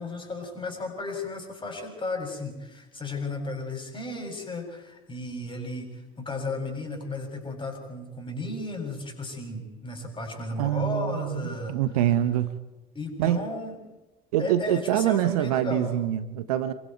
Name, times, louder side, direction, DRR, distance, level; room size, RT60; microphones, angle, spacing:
voice 1, 0.0-11.8 12.9-13.8 14.4-16.0, left 2 dB, 25° left, 2 dB, 7.8 m, -34 dB
voice 2, 10.6-12.5 13.2-13.4 14.3-16.7, right 12 dB, 70° right, 13 dB, 1.1 m, -25 dB
28.5 x 23.5 x 4.7 m, 1.1 s
figure-of-eight pair, 55°, 20 cm